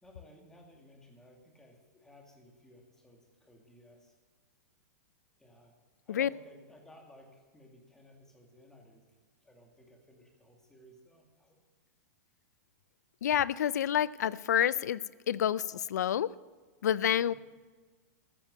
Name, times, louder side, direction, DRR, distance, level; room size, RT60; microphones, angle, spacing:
voice 1, 0.0-4.1 5.4-5.7 6.0-9.1 9.4-11.6 17.3-17.4, left 1 dB, 5° left, 1 dB, 2.3 m, -57 dB
voice 2, 13.2-16.3 16.8-17.3, left 10 dB, 85° left, 20 dB, 0.4 m, -28 dB
14.5 x 7.3 x 9.1 m, 1.4 s
hypercardioid pair, 150°, 9 cm